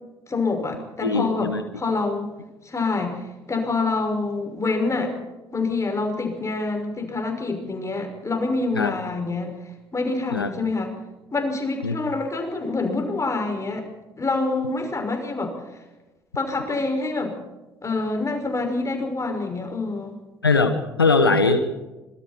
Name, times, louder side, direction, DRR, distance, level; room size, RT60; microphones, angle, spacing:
voice 1, 0.3-2.3 2.6-3.2 3.5-5.1 5.5-9.5 9.9-10.9 11.3-13.9 14.2-15.5 16.3-17.3 17.8-20.1, left 3 dB, 25° left, 4 dB, 6.2 m, -26 dB
voice 2, 1.0-1.6 8.7-8.9 10.3-10.5 11.8-12.0 20.4-21.6, left 3 dB, 85° left, 9 dB, 1.2 m, -20 dB
26.0 x 23.0 x 4.5 m, 1.1 s
figure-of-eight pair, 50°, 12 cm